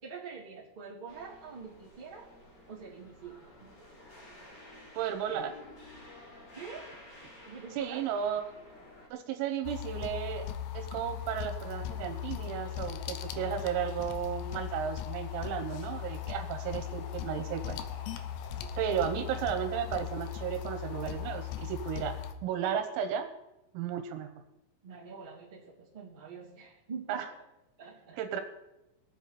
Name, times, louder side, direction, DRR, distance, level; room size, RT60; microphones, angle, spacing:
voice 1, 0.0-2.3 2.7-3.7 6.5-6.9 7.4-8.0 18.6-19.1 24.8-27.2 27.8-28.2, right 5 dB, 15° right, -6 dB, 1.9 m, -45 dB
sound 1, 1.1-9.1, left 1 dB, 35° left, 1.8 m, -52 dB
voice 2, 5.0-5.6 7.8-8.4 9.1-10.5 10.7-17.8 18.8-22.2 22.4-23.3 23.7-24.3 27.1-27.3 28.2-28.4, right 9 dB, 85° right, 7 dB, 3.9 m, -34 dB
sound 2, 9.6-22.3, left 11 dB, 80° left, 2.6 m, -38 dB
sound 3, 11.9-21.6, left 3 dB, 65° left, 2.6 m, -53 dB
21.5 x 8.0 x 4.3 m, 0.93 s
omnidirectional pair, 6.0 m